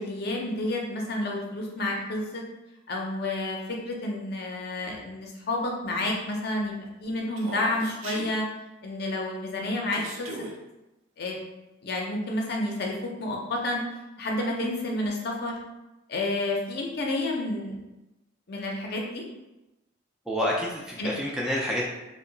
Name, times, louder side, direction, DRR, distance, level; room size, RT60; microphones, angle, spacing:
voice 1, 0.0-2.4 2.9-6.7 7.0-8.5 8.8-10.3 11.2-11.4 11.8-13.8 14.2-15.6 16.1-17.8 18.5-19.2 21.0-21.1, left 1 dB, 50° left, 0 dB, 0.5 m, -30 dB
Human voice, 7.4-8.3 9.9-10.5, right 2 dB, 80° right, 0.5 m, -38 dB
voice 2, 20.3-21.9, equal, 5° right, -4 dB, 0.3 m, -28 dB
3.0 x 2.1 x 3.8 m, 1.0 s
head